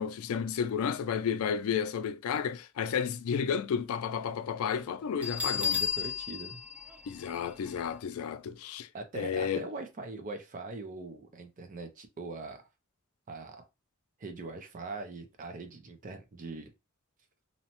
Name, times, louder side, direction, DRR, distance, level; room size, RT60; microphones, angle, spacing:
voice 1, 0.0-5.8 7.1-8.9 9.1-9.7, left 7 dB, 85° left, 0.3 m, -32 dB
Bell, 5.2-7.9, left 7 dB, 5° right, 0.7 m, -33 dB
voice 2, 5.5-6.6 8.9-12.6 13.3-13.6 14.2-16.7, right 3 dB, 40° right, 0.4 m, -42 dB
2.7 x 2.1 x 2.8 m
head